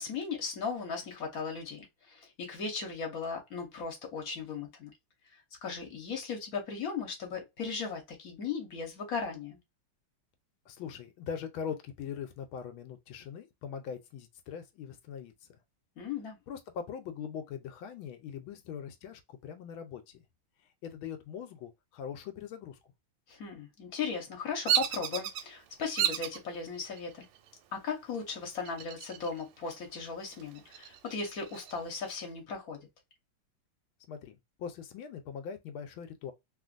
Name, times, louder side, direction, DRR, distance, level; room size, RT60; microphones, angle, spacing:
voice 1, 0.0-4.9 5.6-9.6 16.0-16.4 23.3-27.3 27.7-32.8, left 5 dB, 50° left, 1.2 m, -37 dB
voice 2, 10.7-15.3 16.5-20.2 20.8-22.8 34.1-36.3, left 7 dB, 80° left, 1.4 m, -41 dB
Bird vocalization bird call bird song, 24.7-25.4 26.0-26.4 27.0-27.5 28.7-29.4 29.8-29.9 30.3-31.7, right 10 dB, 90° right, 1.5 m, -31 dB
3.3 x 2.5 x 2.4 m
omnidirectional pair, 2.3 m